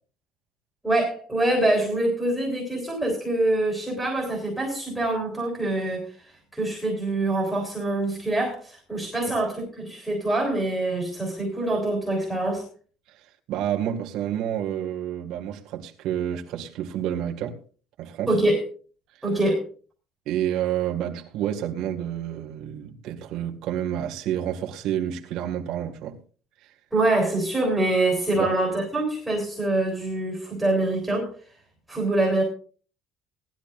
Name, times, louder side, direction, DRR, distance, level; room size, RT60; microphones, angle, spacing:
voice 1, 0.8-12.6 18.3-18.6 19.2-19.6 26.9-31.3 31.9-32.4, right 2 dB, 5° right, 3.7 m, -25 dB
voice 2, 13.5-17.6 18.0-18.3 20.3-26.2 28.3-28.5, right 10 dB, 60° right, 1.9 m, -29 dB
19.0 x 12.5 x 2.6 m
cardioid pair, 175°, 0 cm